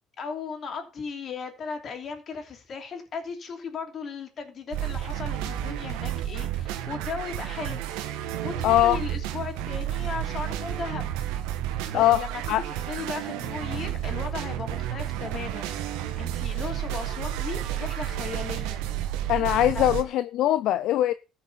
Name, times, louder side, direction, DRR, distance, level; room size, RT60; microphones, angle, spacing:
voice 1, 0.2-7.8 8.4-11.1 11.9-12.4 12.7-15.7 16.2-18.8 19.7-19.8, left 5 dB, 50° left, 3.1 m, -36 dB
sound 1, 4.7-20.0, right 11 dB, 85° right, 1.3 m, -31 dB
voice 2, 8.6-9.0 11.9-12.6 19.3-21.1, left 13 dB, 75° left, 0.5 m, -22 dB
14.5 x 5.9 x 5.6 m
supercardioid pair, 70°, 0 cm